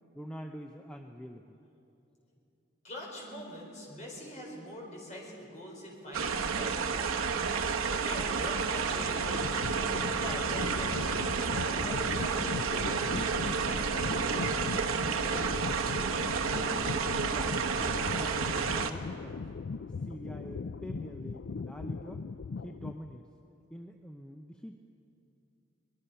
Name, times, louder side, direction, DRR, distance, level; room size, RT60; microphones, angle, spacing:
voice 1, 0.1-1.6 17.3-19.4 20.0-22.2 22.6-23.3 23.7-24.8, equal, 5° left, 3 dB, 0.6 m, -45 dB
voice 2, 2.8-16.7, equal, 35° left, -2 dB, 4.8 m, -45 dB
sound 1, 6.1-18.9, right 5 dB, 85° right, 1.1 m, -31 dB
sound 2, 9.0-23.2, left 4 dB, 55° left, 0.4 m, -39 dB
23.5 x 20.0 x 5.7 m, 2.8 s
head